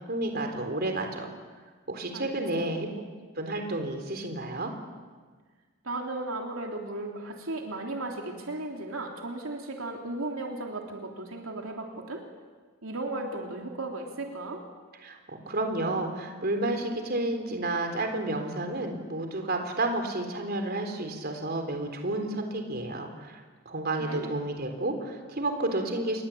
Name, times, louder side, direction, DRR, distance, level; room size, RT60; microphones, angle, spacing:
voice 1, 0.1-1.3 1.9-2.9 3.4-4.7 15.0-23.4 23.7-26.2, right 2 dB, 50° right, 5 dB, 3.9 m, -31 dB
voice 2, 2.1-2.7 5.8-12.2 12.8-14.6 24.0-24.3, right 2 dB, 75° right, 1 dB, 3.4 m, -35 dB
29.0 x 23.0 x 8.7 m, 1.5 s
head